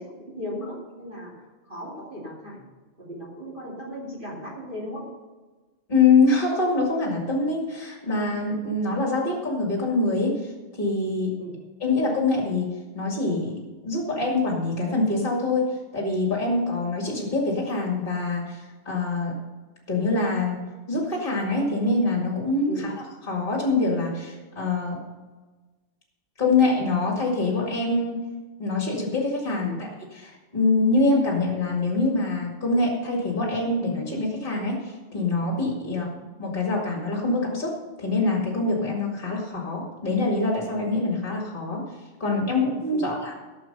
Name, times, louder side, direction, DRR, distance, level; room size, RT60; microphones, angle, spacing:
voice 1, 0.0-1.3 1.6-2.6 3.0-5.1 11.4-11.5 22.7-22.9 29.6-29.8 35.8-36.0 42.9-43.1, equal, 45° right, -4 dB, 2.9 m, -36 dB
voice 2, 5.9-11.4 11.8-19.4 19.9-22.9 23.2-25.0 26.4-28.2 28.6-36.1 36.4-41.8 42.2-43.3, left 3 dB, 45° left, -1 dB, 2.4 m, -25 dB
14.0 x 6.8 x 5.5 m, 1.3 s
omnidirectional pair, 1.2 m